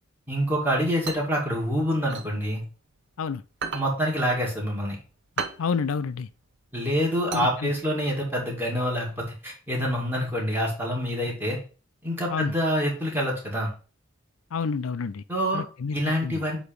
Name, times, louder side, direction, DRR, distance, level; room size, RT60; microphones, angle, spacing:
voice 1, 0.3-2.6 3.7-5.0 6.7-11.6 12.0-13.7 15.3-15.6 15.9-16.6, equal, 10° right, 2.2 m, -26 dB
sound 1, 1.1-3.1 3.5-8.1, right 5 dB, 55° right, 0.8 m, -36 dB
voice 2, 5.6-6.3 7.3-7.7 12.3-12.5 14.5-15.2 15.5-16.4, left 5 dB, 85° left, 0.5 m, -29 dB
8.1 x 3.0 x 5.1 m
head